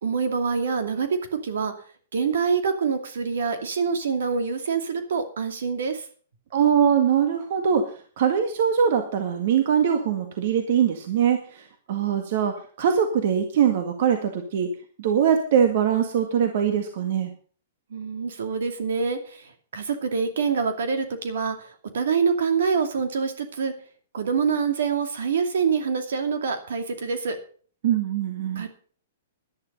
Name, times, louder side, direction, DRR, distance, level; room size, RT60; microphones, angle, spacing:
voice 1, 0.0-1.7 2.1-6.0 17.9-19.4 19.7-21.7 21.9-23.7 24.1-27.4 28.6-28.7, right 5 dB, 80° right, 7 dB, 2.6 m, -25 dB
voice 2, 6.5-7.9 8.2-11.6 11.9-17.3 27.8-28.6, right 8 dB, 60° right, 6 dB, 1.8 m, -22 dB
11.5 x 10.5 x 5.5 m, 0.44 s
hypercardioid pair, 135°, 0 cm